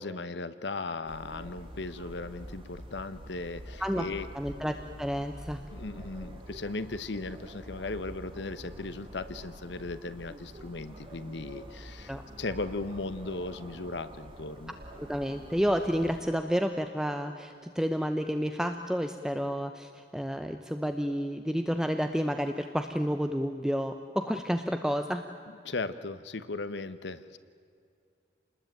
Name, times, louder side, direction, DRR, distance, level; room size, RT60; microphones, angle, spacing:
voice 1, 0.0-4.3 5.7-14.8 25.6-27.4, left 3 dB, 75° left, 13 dB, 1.1 m, -37 dB
sound 1, 1.0-16.3, equal, 30° right, 2.4 m, -46 dB
voice 2, 4.3-5.6 12.1-12.2 15.0-25.3, equal, 5° right, 7 dB, 0.9 m, -30 dB
28.0 x 20.5 x 9.1 m, 2.3 s
head